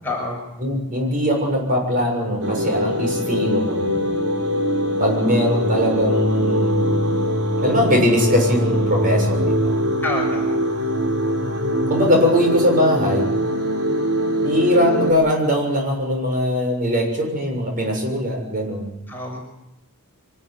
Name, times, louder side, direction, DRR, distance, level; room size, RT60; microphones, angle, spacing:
voice 1, 0.0-0.4 10.0-10.6 19.1-19.4, left 2 dB, 10° left, -1 dB, 6.2 m, -27 dB
voice 2, 0.6-4.0 5.0-7.2 7.6-9.7 11.9-13.3 14.4-18.9, equal, 40° right, 1 dB, 7.1 m, -21 dB
sound 1, 2.4-15.1, equal, 75° right, 4.5 m, -22 dB
24.5 x 14.0 x 9.6 m, 0.90 s
head